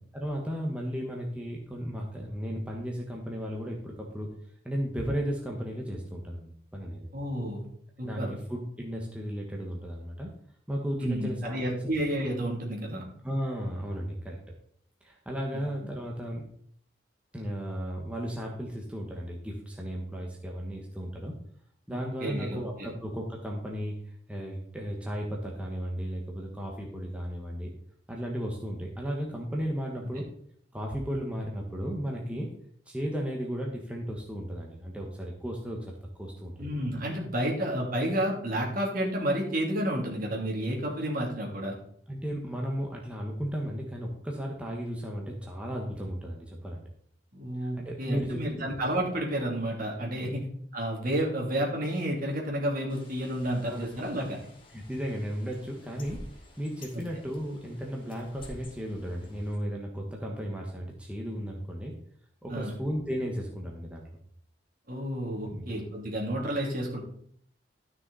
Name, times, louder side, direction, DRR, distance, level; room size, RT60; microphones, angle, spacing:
voice 1, 0.1-4.3 4.6-7.1 8.0-10.3 10.7-12.0 13.2-14.4 15.0-16.4 17.3-21.3 21.9-24.0 24.3-27.7 28.1-30.3 30.7-32.5 32.9-35.8 36.2-36.7 42.1-46.8 47.6-48.6 50.2-50.3 53.6-53.9 54.7-56.3 56.6-61.9 62.4-64.1 65.5-65.7, equal, 5° right, -1 dB, 1.3 m, -35 dB
voice 2, 7.1-7.7 8.0-8.3 11.0-13.0 21.9-22.9 36.6-41.8 47.3-50.4 50.7-54.4 62.5-62.8 64.9-67.0, right 1 dB, 55° right, -1 dB, 2.9 m, -31 dB
Bird, 52.9-59.6, left 1 dB, 30° left, 2.7 m, -50 dB
12.5 x 6.3 x 4.1 m, 0.62 s
head